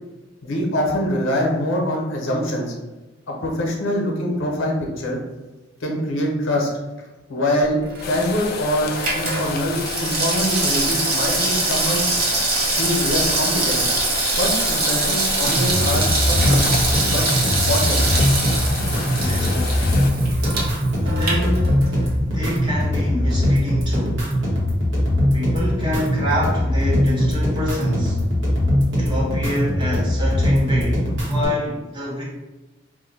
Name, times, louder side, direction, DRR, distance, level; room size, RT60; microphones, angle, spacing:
voice 1, 0.4-2.7 3.3-5.2 5.8-6.7 7.3-12.1 12.6-13.8 14.3-16.6 17.0-17.2 17.7-18.0, left 1 dB, 90° left, 0 dB, 0.8 m, -24 dB
Water tap faucet / Sink (filling or washing), 7.8-22.1 22.4-22.5, right 3 dB, 50° right, 0.7 m, -23 dB
sound 1, 8.0-20.1, left 4 dB, 50° left, 0.3 m, -31 dB
sound 2, 15.4-31.4, left 1 dB, 70° right, 1.0 m, -21 dB
voice 2, 19.0-20.1 21.0-21.9 22.2-24.2 25.3-28.2 29.0-32.2, left 1 dB, 25° right, -6 dB, 0.9 m, -27 dB
2.7 x 2.1 x 4.0 m, 1.2 s
head